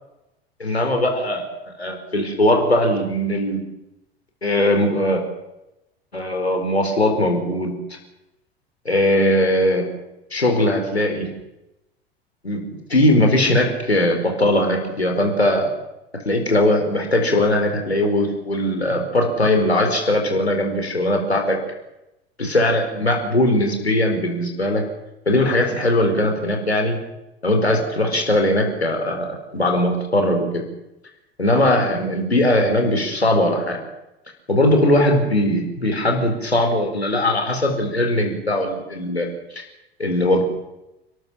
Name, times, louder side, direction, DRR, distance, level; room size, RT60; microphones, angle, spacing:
voice 1, 0.6-1.4 1.8-3.6 4.4-5.2 6.1-7.7 8.8-9.9 10.3-11.3 12.4-15.7 16.2-21.6 22.4-24.8 25.3-27.0 27.4-29.3 29.5-30.6 31.4-33.8 34.5-39.3 39.5-39.6 40.0-40.4, left 1 dB, 90° left, 3 dB, 4.7 m, -19 dB
29.5 x 13.0 x 7.3 m, 0.94 s
figure-of-eight pair, 80°, 31 cm